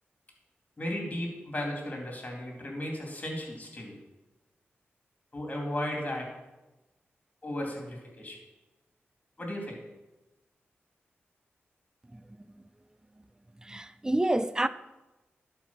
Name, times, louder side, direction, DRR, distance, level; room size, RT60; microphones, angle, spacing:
voice 1, 0.8-4.0 5.3-6.3 7.4-8.4 9.4-9.8, left 1 dB, 35° left, 2.9 m, -35 dB
voice 2, 12.1-12.6 13.2-13.3 13.6-14.7, right 1 dB, 15° right, 0.4 m, -29 dB
11.0 x 4.8 x 5.7 m
cardioid pair, 70°, 4 cm